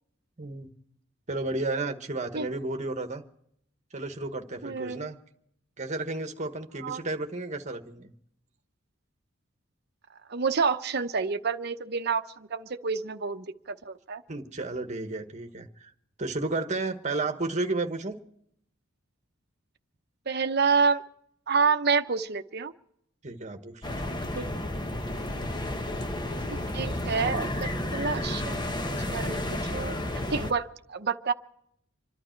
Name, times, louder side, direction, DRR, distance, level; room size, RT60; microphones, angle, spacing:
voice 1, 0.4-0.7 1.3-3.2 3.9-5.2 5.8-8.1 14.3-15.9 16.2-18.2 23.2-24.2, right 2 dB, 35° right, 7 dB, 1.3 m, -32 dB
voice 2, 4.6-5.1 6.8-7.0 10.3-14.2 20.3-21.0 21.5-22.7 24.3-24.5 26.7-28.6 29.1-30.0 30.3-31.3, right 5 dB, 55° right, 9 dB, 0.9 m, -28 dB
sound 1, 23.8-30.5, left 1 dB, 20° left, 1.0 m, -32 dB
26.5 x 12.0 x 4.5 m, 0.73 s
head